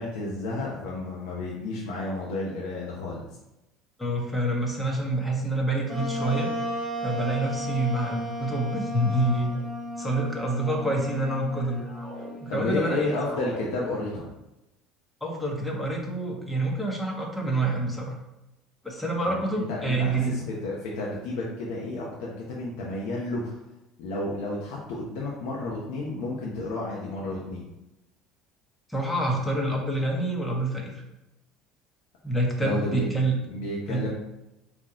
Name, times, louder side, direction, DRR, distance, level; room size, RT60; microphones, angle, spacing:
voice 1, 0.0-3.2 12.5-14.3 19.2-23.6 24.0-27.6 32.6-33.1 33.5-34.1, left 2 dB, 80° left, -4 dB, 0.9 m, -31 dB
voice 2, 4.0-6.5 7.0-9.5 10.0-11.8 12.4-13.1 15.2-18.2 18.8-20.4 28.9-31.0 32.2-33.4 33.9-34.0, right 1 dB, 5° left, -1 dB, 1.1 m, -27 dB
Wind instrument woodwind instrument, 5.9-13.3, right 1 dB, 15° right, 1.4 m, -34 dB
sound 1, 6.7-7.0 7.9-8.3 9.2-9.7 10.3-11.0 11.5-12.3 12.6-13.7, left 1 dB, 45° left, 1.3 m, -44 dB
4.1 x 3.0 x 3.7 m, 0.93 s
cardioid pair, 120°, 0 cm